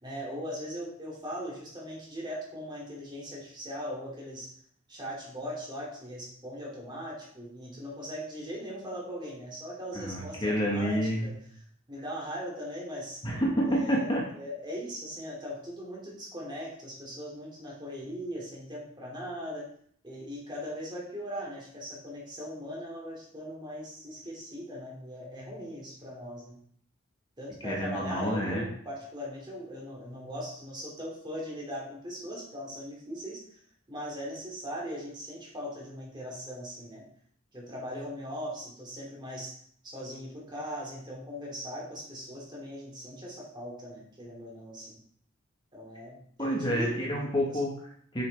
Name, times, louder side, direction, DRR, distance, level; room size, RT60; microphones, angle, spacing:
voice 1, 0.0-4.5 4.9-11.3 11.9-13.2 13.6-14.1 14.3-19.7 20.0-26.6 27.4-33.4 33.9-37.1 37.5-39.6 39.8-45.0 45.7-47.3, equal, 25° right, -3 dB, 2.6 m, -39 dB
voice 2, 9.9-11.3 13.2-14.2 27.6-28.7 46.4-48.3, equal, 25° left, -3 dB, 1.5 m, -29 dB
7.1 x 6.9 x 3.5 m, 0.62 s
head